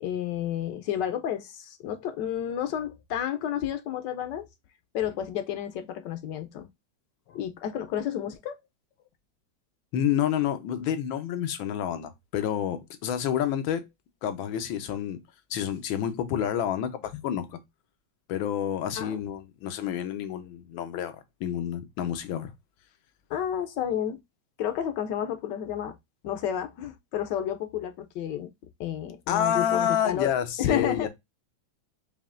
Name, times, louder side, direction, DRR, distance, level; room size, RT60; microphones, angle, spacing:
voice 1, 0.0-4.5 4.9-6.7 7.3-8.6 17.1-17.2 19.0-19.2 23.3-24.2 24.6-26.0 26.2-28.5 28.8-31.1, left 10 dB, 70° left, 1.1 m, -31 dB
voice 2, 9.9-13.8 14.2-15.2 15.5-17.6 18.3-22.5 29.3-31.1, left 9 dB, 90° left, 1.5 m, -29 dB
5.2 x 2.8 x 2.4 m
omnidirectional pair, 2.1 m